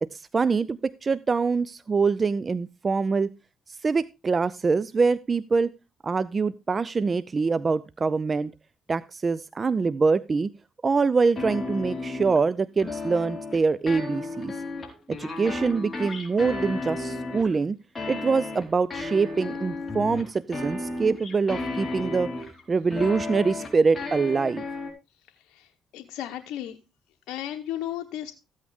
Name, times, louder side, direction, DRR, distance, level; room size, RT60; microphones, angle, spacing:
voice 1, 0.0-3.3 3.8-5.7 6.0-8.5 8.9-10.5 10.8-14.5 15.1-17.8 18.1-22.3 22.7-24.6, right 4 dB, 35° right, 16 dB, 0.5 m, -24 dB
sound 1, 11.4-12.4 12.8-13.6 13.9-17.5 18.0-22.6 22.9-24.9, left 3 dB, 25° left, 4.3 m, -33 dB
voice 2, 25.3-26.8 27.3-28.3, left 12 dB, 80° left, 4 dB, 0.9 m, -35 dB
14.5 x 8.5 x 3.5 m, 0.27 s
cardioid pair, 75°, 0 cm